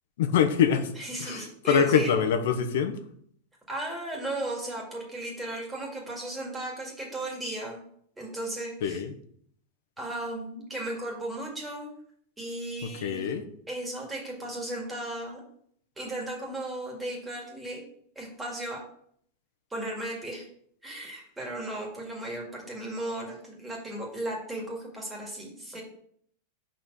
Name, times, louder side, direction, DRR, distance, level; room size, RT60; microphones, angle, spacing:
voice 1, 0.2-0.9 1.2-3.0 8.8-9.1 13.0-13.4, left 7 dB, 70° left, 8 dB, 0.9 m, -24 dB
voice 2, 1.0-2.1 3.7-7.8 8.2-9.0 10.0-11.9 12.4-13.3 13.7-15.4 16.0-17.8 18.2-18.8 19.7-20.5 20.8-25.8, right 1 dB, 10° right, -2 dB, 2.1 m, -35 dB
5.5 x 4.3 x 6.2 m, 0.64 s
supercardioid pair, 150°, 0 cm